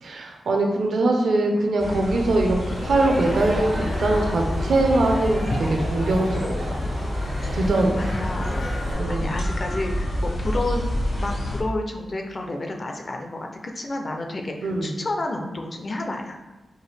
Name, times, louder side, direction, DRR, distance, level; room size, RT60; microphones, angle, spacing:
voice 1, 0.0-5.4 5.9-6.5 7.5-8.0 9.0-9.3 14.6-14.9, right 2 dB, 70° right, 2 dB, 0.6 m, -22 dB
sound 1, 1.8-11.6, left 1 dB, 70° left, 1.0 m, -28 dB
Crowd, 2.6-8.9, equal, 85° right, 1.4 m, -34 dB
voice 2, 7.9-10.8 11.2-16.4, left 2 dB, 30° left, 3 dB, 0.4 m, -30 dB
4.7 x 2.4 x 3.3 m, 1.1 s
wide cardioid pair, 175°, 0 cm